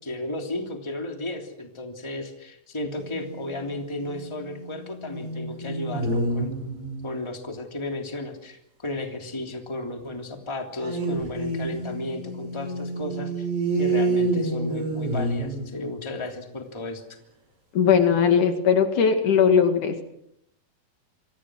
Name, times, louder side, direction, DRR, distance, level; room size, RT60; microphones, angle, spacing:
voice 1, 0.0-6.5 7.0-13.5 13.7-17.0, left 2 dB, 10° left, 3 dB, 2.8 m, -34 dB
sound 1, 3.0-3.7 4.0-7.1 10.8-16.1, right 2 dB, 60° right, 8.0 m, -29 dB
voice 2, 17.7-20.0, left 7 dB, 65° left, 7 dB, 3.5 m, -19 dB
28.0 x 25.0 x 6.4 m, 0.76 s
omnidirectional pair, 3.8 m